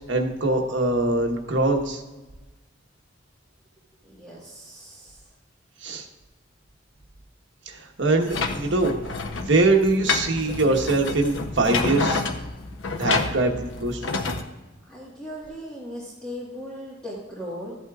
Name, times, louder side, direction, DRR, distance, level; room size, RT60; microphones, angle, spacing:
voice 1, 0.1-2.0 5.8-6.1 7.7-9.0 9.3-12.2 13.0-13.5 13.8-14.0, right 2 dB, 70° right, 2 dB, 1.1 m, -22 dB
voice 2, 4.0-5.2 14.9-17.8, equal, 5° left, -8 dB, 1.5 m, -38 dB
sound 1, 8.2-14.4, left 4 dB, 75° left, 0.7 m, -29 dB
14.0 x 8.2 x 2.4 m, 1.1 s
head